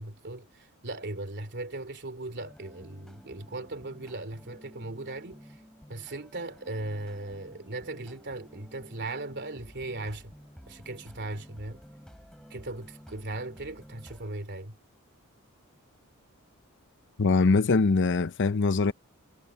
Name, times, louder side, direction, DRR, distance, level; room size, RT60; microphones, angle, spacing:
voice 1, 0.0-5.6 5.9-10.3 10.7-11.8 12.5-14.7, right 2 dB, 50° right, 3.1 m, -38 dB
sound 1, 2.4-14.3, equal, 5° left, 4.3 m, -52 dB
voice 2, 17.2-18.9, left 3 dB, 55° left, 0.7 m, -23 dB
head